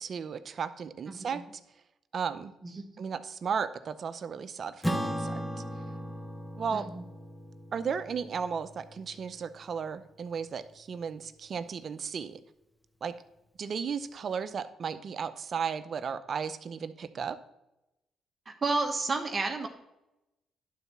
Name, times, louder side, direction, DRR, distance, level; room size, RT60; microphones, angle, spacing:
voice 1, 0.0-1.4 2.1-2.5 3.0-5.4 6.6-6.9 7.7-12.4 13.0-13.1 13.6-17.4, right 6 dB, 55° right, 11 dB, 0.6 m, -35 dB
Acoustic guitar / Strum, 4.8-9.6, equal, 5° left, 0.9 m, -37 dB
voice 2, 6.7-7.0 18.5-19.7, right 3 dB, 35° right, 4 dB, 1.1 m, -30 dB
11.5 x 4.1 x 5.6 m, 0.92 s
cardioid pair, 75°, 0 cm